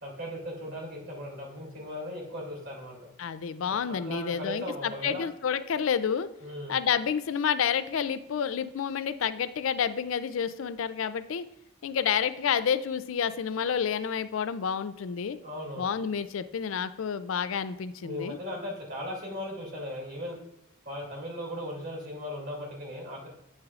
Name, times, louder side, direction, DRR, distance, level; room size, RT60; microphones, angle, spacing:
voice 1, 0.0-3.0 3.9-5.2 6.4-6.7 15.4-15.9 18.0-20.4 20.8-23.3, left 1 dB, 50° right, -3 dB, 2.7 m, -37 dB
voice 2, 3.2-6.3 6.7-11.5 11.8-15.4 15.8-18.4, left 7 dB, 85° left, 13 dB, 0.4 m, -29 dB
9.3 x 6.4 x 2.4 m, 0.84 s
head